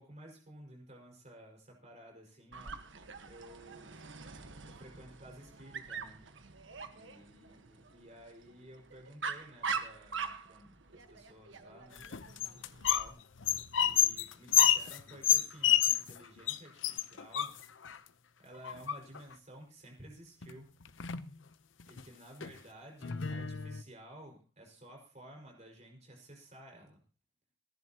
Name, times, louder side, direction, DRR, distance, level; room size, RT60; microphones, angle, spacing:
voice 1, 0.0-2.8 3.2-4.0 4.7-6.4 6.9-12.0 12.7-13.2 13.8-17.6 18.4-20.7 21.9-27.0, right 1 dB, 35° right, 1 dB, 5.5 m, -54 dB
Dog, 2.5-13.1, right 5 dB, 75° right, 1.4 m, -43 dB
sound 1, 12.0-13.1 13.4-16.2 16.5-16.6 16.8-18.0 18.6-19.3 20.4-20.5 20.8-21.3 21.8-22.0 22.4-22.5 23.0-23.8, left 11 dB, 85° left, 0.8 m, -29 dB
27.5 x 11.0 x 3.0 m, 0.34 s
head